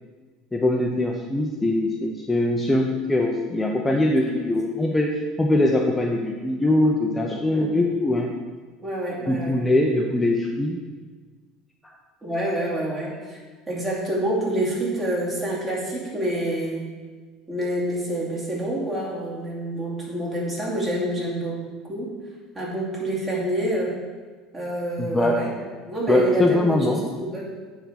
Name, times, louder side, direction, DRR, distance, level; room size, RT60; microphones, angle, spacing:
voice 1, 0.5-8.3 9.3-10.8 25.0-25.4 26.1-27.0, left 1 dB, 10° left, 0 dB, 0.6 m, -22 dB
voice 2, 3.9-4.5 7.5-7.6 8.8-9.5 12.2-13.4 13.7-16.8 17.5-21.6 21.8-22.1 22.5-24.0 24.5-25.5 25.8-27.5, right 1 dB, 25° right, -5 dB, 2.5 m, -27 dB
9.2 x 3.6 x 5.6 m, 1.4 s
supercardioid pair, 120°, 0 cm